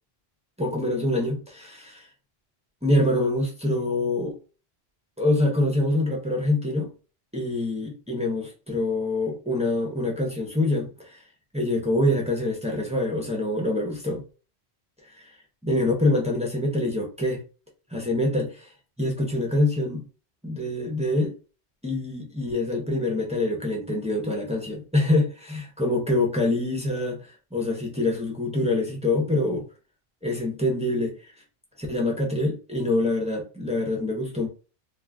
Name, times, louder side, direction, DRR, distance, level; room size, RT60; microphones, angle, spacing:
voice 1, 0.6-2.0 2.8-4.4 5.2-6.9 7.3-11.2 11.5-14.2 15.1-15.3 15.6-17.4 17.9-18.7 19.0-20.0 20.4-21.3 21.8-29.6 30.2-31.1 31.8-34.5, left 2 dB, 10° right, 0.5 m, -25 dB
2.3 x 2.3 x 3.3 m
omnidirectional pair, 1.1 m